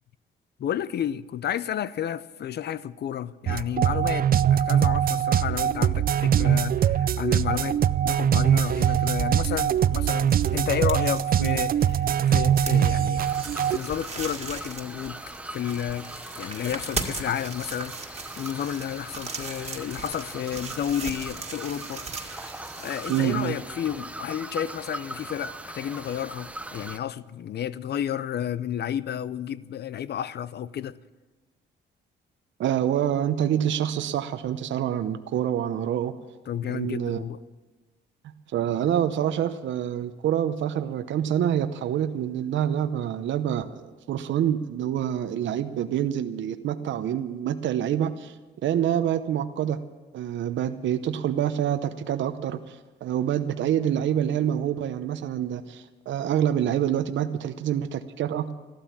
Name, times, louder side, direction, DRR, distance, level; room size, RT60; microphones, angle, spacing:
voice 1, 0.6-7.8 8.0-13.2 13.7-15.2 15.5-16.1 16.4-31.0 36.5-37.4, left 10 dB, 55° left, 0.6 m, -31 dB
sound 1, 3.5-13.8, right 9 dB, 45° right, 0.5 m, -22 dB
sound 2, 9.0-23.9, right 4 dB, 30° right, 2.0 m, -39 dB
sound 3, 13.2-27.0, right 1 dB, 5° right, 0.8 m, -40 dB
voice 2, 23.1-23.6 32.6-36.1 36.7-37.2 38.5-48.4 48.6-49.8 50.1-58.5, right 10 dB, 70° right, 0.8 m, -26 dB
14.5 x 12.5 x 7.3 m
cardioid pair, 90°, 20 cm